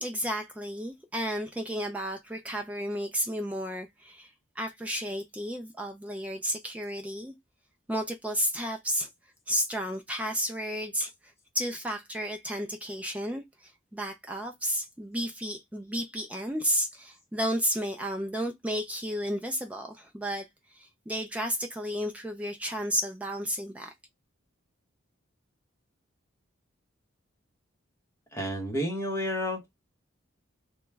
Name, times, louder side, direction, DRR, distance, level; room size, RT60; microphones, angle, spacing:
voice 1, 0.0-4.3 4.6-7.3 7.9-9.1 9.5-11.1 11.5-23.9, equal, 5° right, 0.3 m, -32 dB
voice 2, 28.3-29.7, equal, 15° left, 1.0 m, -31 dB
3.0 x 2.2 x 3.2 m
head